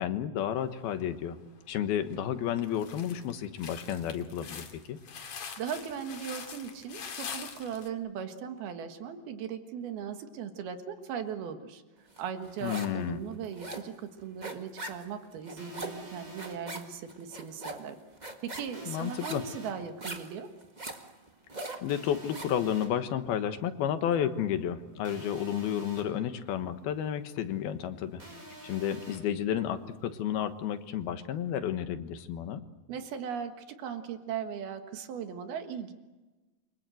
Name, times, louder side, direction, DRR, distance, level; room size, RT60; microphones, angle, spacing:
voice 1, 0.0-1.4 1.7-5.0 12.6-13.2 18.9-19.4 21.8-28.2 28.6-32.6, left 9 dB, 80° left, 9 dB, 3.3 m, -31 dB
sound 1, 1.0-1.6 2.1-2.2 2.6-7.9, left 6 dB, 50° left, 3.2 m, -43 dB
voice 2, 5.6-18.0 18.4-20.5 32.9-35.9, right 7 dB, 80° right, 7 dB, 3.5 m, -38 dB
sound 2, 12.2-13.0 13.3-22.6, right 2 dB, 45° right, 0.5 m, -42 dB
sound 3, 15.6-16.6 18.7-19.7 21.9-22.9 25.0-26.0 28.2-29.2, right 1 dB, 20° right, 6.4 m, -48 dB
29.0 x 25.0 x 7.9 m, 1.2 s
omnidirectional pair, 4.4 m